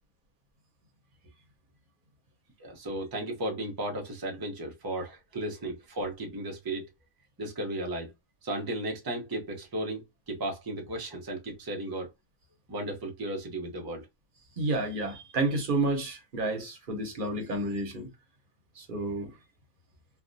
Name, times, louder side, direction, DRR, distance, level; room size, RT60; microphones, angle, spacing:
voice 1, 2.6-6.9 7.4-8.1 8.4-12.1 12.7-14.0, right 1 dB, 25° right, 0.6 m, -35 dB
voice 2, 14.6-18.1 18.8-19.3, right 2 dB, 40° right, 1.0 m, -30 dB
3.4 x 2.3 x 2.6 m
omnidirectional pair, 1.5 m